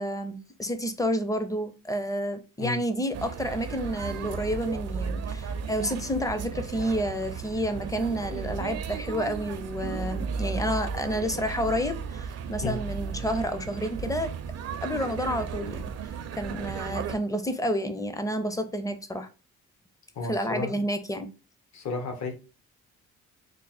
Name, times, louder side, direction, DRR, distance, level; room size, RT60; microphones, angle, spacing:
voice 1, 0.0-14.3 14.8-15.9 16.3-19.3 20.3-21.3, equal, 10° left, 0.5 m, -30 dB
sound 1, 3.1-17.2, right 6 dB, 55° right, 0.5 m, -35 dB
voice 2, 20.1-20.8 21.7-22.4, left 3 dB, 65° left, 1.1 m, -32 dB
3.3 x 2.1 x 4.1 m
cardioid pair, 90°, 30 cm